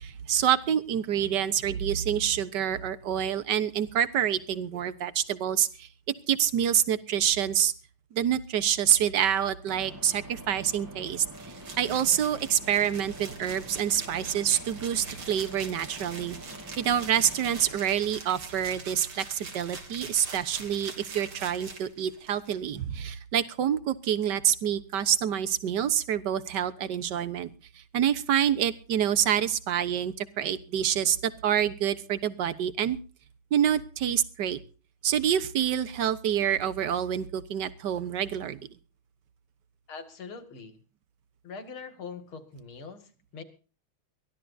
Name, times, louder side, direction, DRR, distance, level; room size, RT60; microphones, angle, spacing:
voice 1, 0.0-5.9 6.3-7.7 8.1-11.3 11.8-16.4 16.8-27.5 27.9-33.0 33.5-34.6 35.0-38.6, right 9 dB, 55° right, 12 dB, 1.7 m, -27 dB
sound 1, 9.7-17.8, equal, 10° right, 1.4 m, -46 dB
sound 2, 11.3-22.5, right 4 dB, 75° right, 3.8 m, -44 dB
voice 2, 39.9-40.8 41.4-43.4, left 5 dB, 70° left, 7 dB, 3.0 m, -42 dB
22.5 x 16.0 x 2.7 m, 0.39 s
omnidirectional pair, 2.4 m